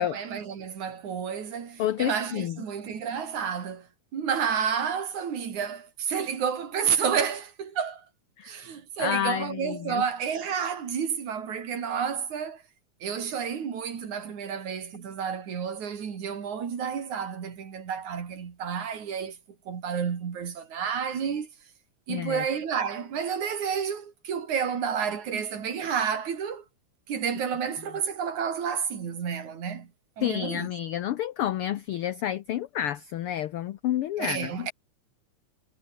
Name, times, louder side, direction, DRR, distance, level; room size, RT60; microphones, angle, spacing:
voice 1, 0.0-3.9 4.1-8.1 8.4-12.6 13.0-19.4 19.7-21.5 22.1-26.6 27.1-29.9 30.2-30.7 34.2-34.7, right 7 dB, 75° right, 4.4 m, -30 dB
voice 2, 1.8-2.6 8.4-8.5 9.0-10.0 22.1-22.4 30.2-34.7, left 11 dB, 70° left, 1.4 m, -29 dB
omnidirectional pair, 3.4 m